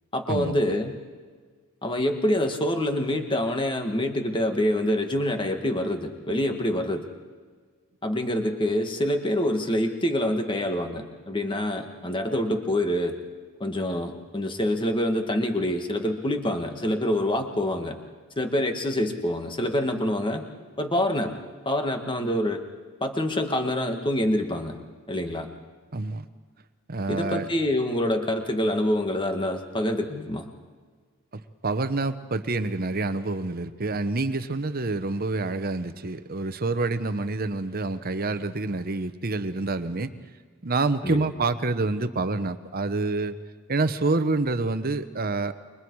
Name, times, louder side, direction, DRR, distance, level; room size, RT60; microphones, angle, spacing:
voice 1, 0.1-0.9 1.8-7.0 8.0-13.1 13.6-18.0 18.4-20.4 20.8-21.3 21.7-22.6 23.0-24.8 25.1-25.5 27.1-30.4 41.0-41.3, left 1 dB, 25° left, 5 dB, 1.8 m, -26 dB
voice 2, 25.9-26.3 26.9-27.5 31.6-40.1 40.6-43.3 43.7-45.5, right 3 dB, 45° right, 10 dB, 1.0 m, -27 dB
29.5 x 23.5 x 4.8 m, 1.5 s
head